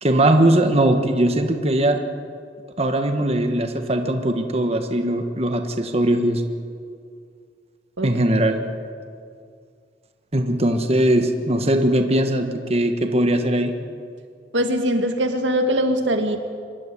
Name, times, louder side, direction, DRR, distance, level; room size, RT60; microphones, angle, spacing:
voice 1, 0.0-2.0 2.8-6.4 8.0-8.6 10.3-13.7, right 1 dB, 35° right, 5 dB, 1.5 m, -20 dB
voice 2, 14.5-16.4, equal, 85° right, 5 dB, 2.2 m, -21 dB
26.0 x 12.0 x 9.9 m, 2.2 s
head